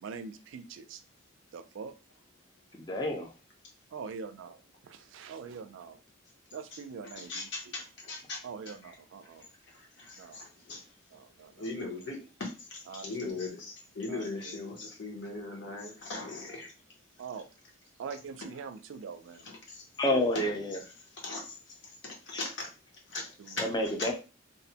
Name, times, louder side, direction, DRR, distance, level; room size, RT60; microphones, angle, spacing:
voice 1, 0.0-1.0 1.5-1.9 3.9-6.0 6.5-7.5 8.4-9.5 10.2-10.4 11.1-11.6 12.9-13.4 14.1-14.5 17.2-17.5 18.0-19.5 23.4-23.6, right 5 dB, 75° right, 0.3 m, -43 dB
voice 2, 2.8-3.3 20.0-20.8 22.3-22.4 23.6-24.1, left 1 dB, 20° left, 0.5 m, -29 dB
voice 3, 6.7-9.0 9.7-10.8 11.6-16.7 19.4-19.9 20.3-20.6 21.2-21.5 22.0-22.7 23.1-23.7 24.0-24.1, left 3 dB, 60° left, 0.9 m, -39 dB
2.5 x 2.1 x 2.7 m
head